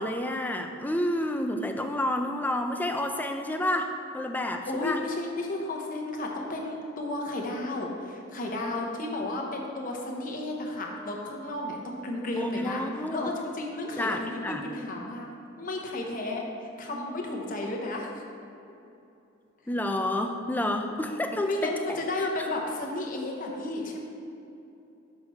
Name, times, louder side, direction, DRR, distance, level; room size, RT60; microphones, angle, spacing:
voice 1, 0.0-5.0 12.3-13.3 14.0-14.6 19.7-22.0, left 1 dB, 10° left, 5 dB, 0.4 m, -29 dB
voice 2, 4.7-12.8 13.1-15.3 15.6-18.2 21.5-24.0, left 2 dB, 45° left, 0 dB, 1.0 m, -33 dB
6.7 x 5.6 x 4.4 m, 2.8 s
head